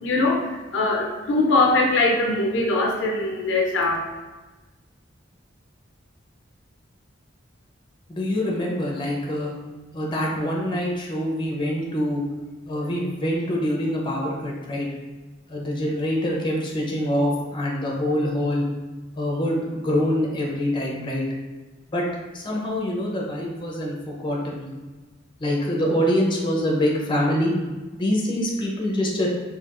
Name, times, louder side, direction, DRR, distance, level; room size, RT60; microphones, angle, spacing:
voice 1, 0.0-4.0, left 2 dB, 65° left, 0 dB, 0.5 m, -21 dB
voice 2, 8.1-9.5 9.9-12.2 12.7-14.9 15.5-18.7 19.2-21.3 21.9-22.0 22.3-24.7 25.4-27.5 27.9-29.3, left 1 dB, 25° left, -2 dB, 0.6 m, -25 dB
4.4 x 2.8 x 2.5 m, 1.2 s
head